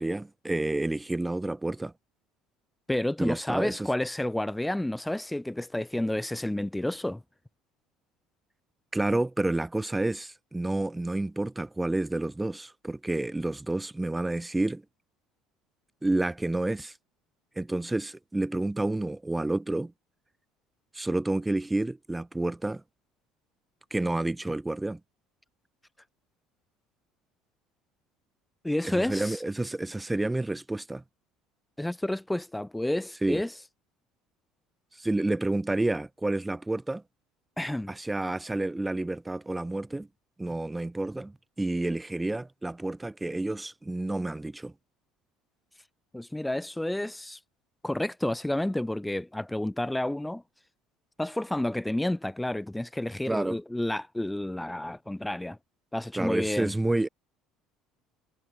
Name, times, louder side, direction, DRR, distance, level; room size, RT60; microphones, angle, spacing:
voice 1, 0.0-1.9 3.2-3.9 8.9-14.8 16.0-16.9 17.6-19.9 20.9-22.8 23.9-25.0 28.8-31.0 33.2-33.4 35.0-37.0 37.9-40.1 40.4-44.7 53.3-53.6 56.1-57.1, right 2 dB, 10° right, 4.2 m, -29 dB
voice 2, 2.9-7.2 28.6-29.4 31.8-33.5 37.6-37.9 46.1-47.4 47.8-50.4 51.2-55.6 55.9-56.7, left 1 dB, 5° left, 4.0 m, -30 dB
hypercardioid pair, 70°, 0 cm